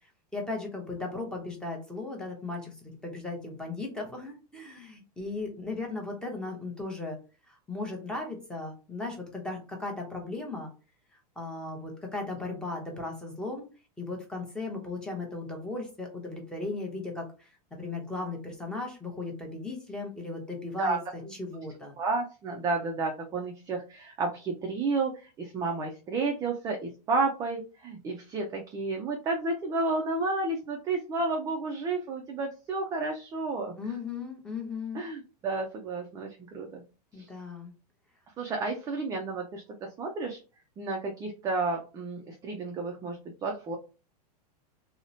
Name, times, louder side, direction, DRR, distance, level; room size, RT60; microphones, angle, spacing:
voice 1, 0.3-7.2 7.5-10.7 11.4-13.7 14.0-21.0 21.3-21.9 33.8-35.0 37.1-37.7, left 3 dB, 5° left, 0 dB, 0.7 m, -36 dB
voice 2, 22.0-33.7 34.9-36.8 37.2-37.3 38.4-40.4 40.8-43.8, right 3 dB, 15° right, 1 dB, 0.3 m, -31 dB
2.8 x 2.0 x 2.6 m, 0.33 s
supercardioid pair, 135°, 21 cm